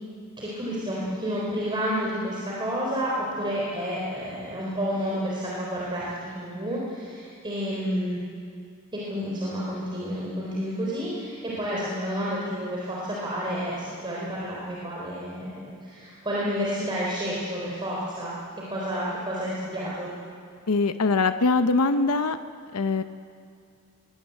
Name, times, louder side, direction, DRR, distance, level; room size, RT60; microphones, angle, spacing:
voice 1, 0.4-8.2 8.9-18.4 18.7-20.1, equal, 20° right, -6 dB, 4.0 m, -30 dB
voice 2, 20.7-22.4 22.7-23.0, left 3 dB, 85° left, 10 dB, 0.7 m, -22 dB
22.5 x 17.5 x 8.3 m, 2.3 s
head